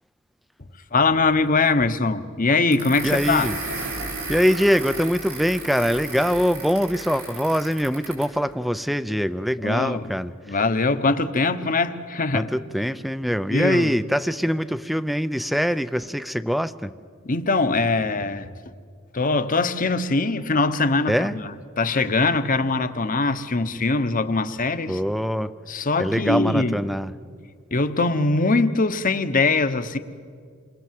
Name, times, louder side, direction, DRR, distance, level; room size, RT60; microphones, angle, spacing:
voice 1, 0.6-3.5 9.6-10.1 10.5-12.5 13.5-13.9 17.2-18.5 19.1-25.0 25.7-26.7 27.7-30.0, left 3 dB, 40° left, 1.1 m, -22 dB
sound 1, 2.7-8.4, right 2 dB, 90° right, 7.3 m, -34 dB
voice 2, 3.0-3.5 4.3-10.3 12.3-16.9 21.1-21.3 24.9-25.5 26.0-27.1, equal, ahead, 0.6 m, -23 dB
29.0 x 22.5 x 7.6 m
head